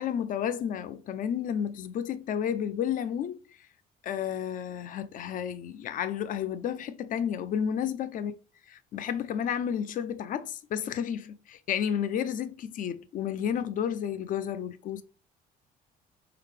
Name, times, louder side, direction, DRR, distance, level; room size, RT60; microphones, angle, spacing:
voice 1, 0.0-3.4 4.0-8.4 8.9-15.0, left 8 dB, 50° left, 0.5 m, -31 dB
3.9 x 3.6 x 3.3 m
cardioid pair, 110°, 17 cm